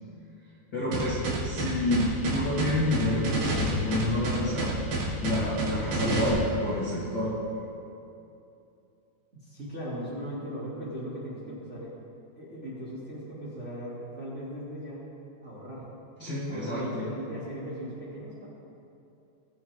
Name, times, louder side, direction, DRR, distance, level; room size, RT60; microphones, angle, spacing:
voice 1, 0.7-1.2 1.4-4.7 5.2-7.4 16.2-17.1, left 1 dB, 35° left, -10 dB, 2.0 m, -28 dB
sound 1, 0.9-6.3, right 2 dB, 70° right, 3.5 m, -29 dB
voice 2, 9.3-12.0 12.4-15.0 15.4-15.9 16.5-18.4, equal, 20° right, -9 dB, 2.4 m, -38 dB
21.5 x 7.9 x 3.6 m, 2.7 s
omnidirectional pair, 4.3 m